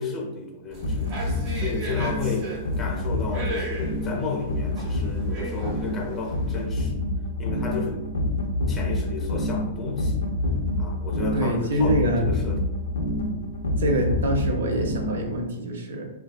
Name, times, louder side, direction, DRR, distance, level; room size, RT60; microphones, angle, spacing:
voice 1, 0.0-7.0 7.4-8.3 8.7-10.2 10.8-12.8, left 4 dB, 20° left, 1 dB, 0.5 m, -32 dB
sound 1, 0.7-6.6, right 1 dB, 40° right, 0.7 m, -37 dB
sound 2, 0.8-15.5, left 1 dB, 90° left, 0.4 m, -28 dB
voice 2, 11.3-12.2 13.8-16.1, right 1 dB, 85° right, 2 dB, 0.5 m, -25 dB
2.5 x 2.2 x 2.2 m, 0.98 s
hypercardioid pair, 140°, 0 cm